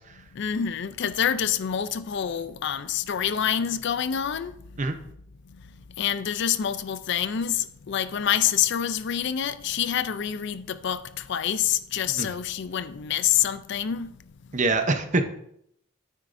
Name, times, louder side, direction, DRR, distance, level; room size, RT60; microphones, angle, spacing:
voice 1, 0.3-4.5 6.0-14.1, left 9 dB, 55° left, 0.4 m, -27 dB
voice 2, 14.5-15.2, right 3 dB, 35° right, 0.7 m, -24 dB
9.6 x 9.0 x 2.6 m
head